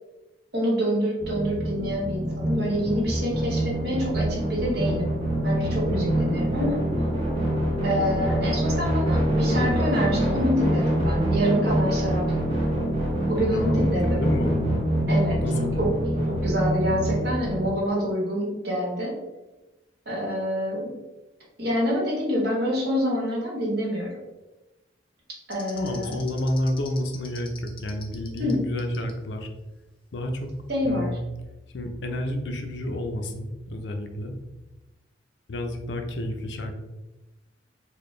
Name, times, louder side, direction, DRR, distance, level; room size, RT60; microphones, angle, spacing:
voice 1, 0.5-5.1 5.4-6.8 7.8-12.2 13.3-14.2 15.1-15.4 15.8-15.9 16.3-19.1 20.0-20.9 21.6-24.2 25.5-26.2 28.4-28.6 30.7-31.1, equal, 60° right, -4 dB, 1.4 m, -26 dB
sound 1, 1.2-17.7, right 1 dB, 30° right, 1.2 m, -25 dB
voice 2, 13.5-14.7 15.4-15.8 25.7-29.5 30.1-30.5 30.8-31.2 31.7-34.4 35.5-36.7, left 1 dB, 75° left, 5 dB, 0.5 m, -30 dB
sound 2, 25.5-28.5 28.8-29.1, left 6 dB, 30° left, 0.5 m, -43 dB
4.2 x 2.3 x 3.2 m, 1.0 s
head